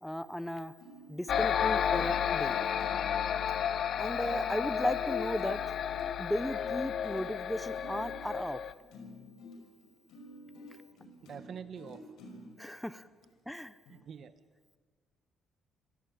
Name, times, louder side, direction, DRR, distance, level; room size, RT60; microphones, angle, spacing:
voice 1, 0.0-0.7 1.1-2.5 4.0-5.6 6.2-8.6 12.6-13.1 13.5-13.7, equal, 5° left, 14 dB, 1.1 m, -35 dB
sound 1, 0.8-12.6 13.2-13.3 13.9-14.0, left 1 dB, 75° left, 6.0 m, -51 dB
sound 2, 1.3-8.7, left 8 dB, 60° left, 0.8 m, -32 dB
voice 2, 11.2-12.1 13.9-14.3, right 7 dB, 55° right, 11 dB, 1.6 m, -45 dB
28.5 x 17.5 x 8.8 m, 1.5 s
cardioid pair, 100°, 0 cm